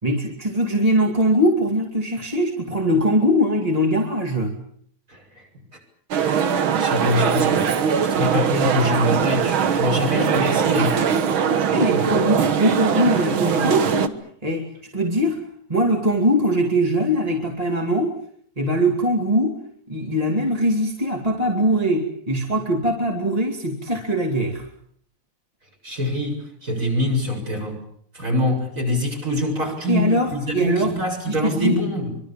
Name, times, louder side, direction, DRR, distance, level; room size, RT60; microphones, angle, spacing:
voice 1, 0.0-4.6 11.7-14.2 14.4-15.4 15.7-18.2 18.6-19.6 19.9-24.7 29.9-30.9 31.3-31.7, equal, 15° right, 2 dB, 2.5 m, -21 dB
voice 2, 5.1-5.5 6.5-11.1 11.8-12.2 25.8-27.8 28.1-32.2, left 1 dB, 35° right, 2 dB, 8.1 m, -24 dB
sound 1, 6.1-14.1, right 7 dB, 75° right, 2.2 m, -21 dB
25.0 x 24.5 x 7.4 m, 0.64 s
omnidirectional pair, 2.3 m